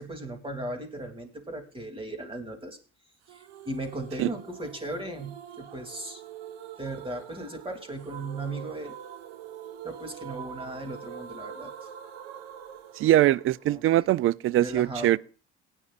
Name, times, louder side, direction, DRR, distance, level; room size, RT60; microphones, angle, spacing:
voice 1, 0.0-2.8 3.3-6.2 6.8-8.9 9.8-11.7 13.7-14.1 14.6-15.2, right 1 dB, 20° right, 2.8 m, -37 dB
sound 1, 3.3-14.2, right 9 dB, 85° right, 1.1 m, -44 dB
voice 2, 13.0-15.2, right 14 dB, 45° right, 0.4 m, -22 dB
18.5 x 9.6 x 2.4 m
supercardioid pair, 75°, 29 cm